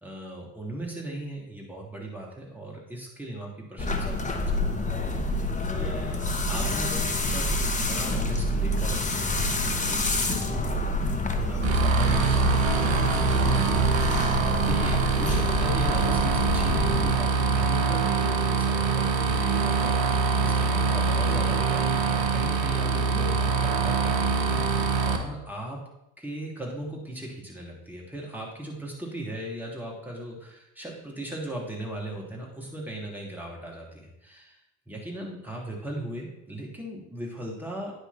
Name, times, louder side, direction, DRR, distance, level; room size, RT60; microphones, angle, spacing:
voice 1, 0.0-4.9 5.2-5.4 5.7-13.9 14.6-25.8 26.2-34.6 34.9-37.9, right 1 dB, 5° right, -3 dB, 3.0 m, -38 dB
sound 1, 3.8-17.2, left 2 dB, 20° left, 1.1 m, -27 dB
sound 2, 11.6-25.2, right 5 dB, 75° right, 1.1 m, -24 dB
9.4 x 6.4 x 4.3 m, 0.84 s
figure-of-eight pair, 60°, 41 cm